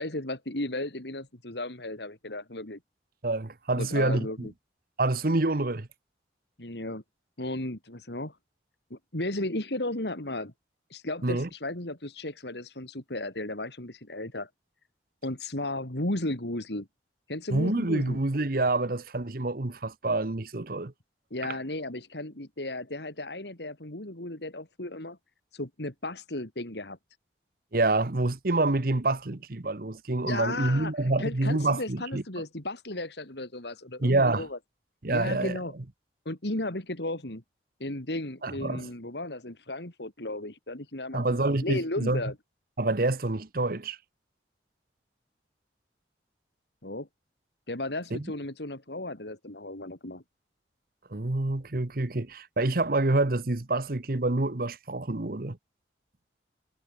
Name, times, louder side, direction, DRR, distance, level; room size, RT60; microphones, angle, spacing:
voice 1, 0.0-2.8 3.8-4.5 6.6-7.0 7.4-8.4 8.9-10.5 10.9-14.5 15.2-16.9 17.3-18.2 21.3-25.2 25.5-27.0 30.2-34.6 35.1-35.7 36.3-37.4 37.8-42.3 46.8-47.1 47.7-50.2, left 1 dB, 70° left, 3.5 m, -35 dB
voice 2, 3.2-4.5 5.0-5.9 11.2-11.5 17.5-20.9 21.4-21.5 27.7-32.2 34.0-34.5 35.0-35.6 38.4-38.9 41.1-42.2 42.8-44.0 48.1-48.2 51.1-55.6, right 2 dB, 55° right, 1.2 m, -27 dB
head